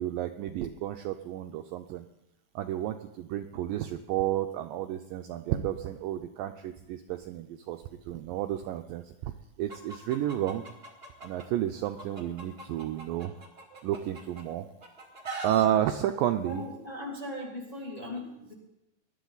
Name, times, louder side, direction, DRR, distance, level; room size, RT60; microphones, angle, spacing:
voice 1, 0.0-2.1 2.6-9.3 9.6-10.7 11.2-13.3 13.7-14.7 15.4-16.6, right 12 dB, 80° right, 7 dB, 2.1 m, -31 dB
Chicken rooster, 9.7-11.4 11.8-14.4 14.8-15.7, right 2 dB, 30° right, 1.1 m, -41 dB
voice 2, 16.4-18.5, left 1 dB, 15° left, -1 dB, 2.0 m, -38 dB
20.0 x 11.5 x 4.0 m, 0.91 s
omnidirectional pair, 4.4 m